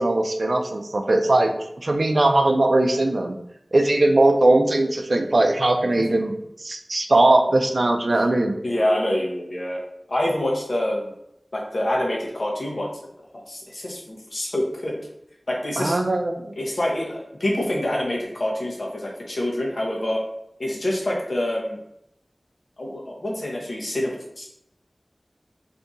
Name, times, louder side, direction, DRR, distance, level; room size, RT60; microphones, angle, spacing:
voice 1, 0.0-1.5 1.8-3.4 3.7-8.5 15.8-16.5, right 2 dB, 65° right, 5 dB, 0.4 m, -20 dB
voice 2, 8.6-9.8 10.1-11.1 11.5-12.9 13.5-15.0 15.5-16.0 16.6-20.2 20.6-21.8 22.8-24.5, left 1 dB, 65° left, -2 dB, 0.9 m, -26 dB
2.7 x 2.6 x 3.6 m, 0.78 s
wide cardioid pair, 60°, 0 cm